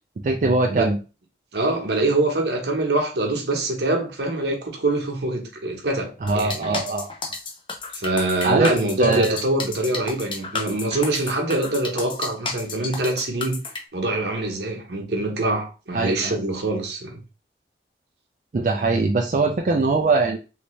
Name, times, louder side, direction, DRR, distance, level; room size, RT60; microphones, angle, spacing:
voice 1, 0.2-1.0 6.2-7.1 8.4-8.7 9.0-9.4 15.9-16.4 18.5-20.4, right 3 dB, 45° right, 0.3 m, -21 dB
voice 2, 1.5-6.8 7.9-13.6 13.9-17.2, right 2 dB, 75° right, 0.9 m, -24 dB
sound 1, 6.3-13.8, left 4 dB, 30° left, 0.5 m, -32 dB
3.2 x 2.6 x 3.1 m
head